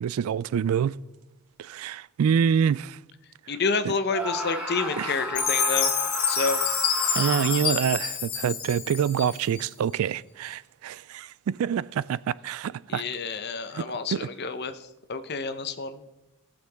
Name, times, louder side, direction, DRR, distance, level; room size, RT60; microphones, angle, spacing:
voice 1, 0.0-1.0 1.6-3.0 3.8-3.9 5.0-5.2 7.2-13.0 13.7-13.8 14.1-14.3, right 8 dB, 75° right, 0.3 m, -26 dB
voice 2, 3.5-5.9 6.3-6.6 12.9-14.7 15.1-16.0, left 4 dB, 50° left, 0.8 m, -29 dB
Screaming, 4.1-7.9, equal, 5° right, 1.3 m, -33 dB
Chime, 5.4-9.6, left 6 dB, 85° left, 2.1 m, -27 dB
19.0 x 6.9 x 3.5 m
head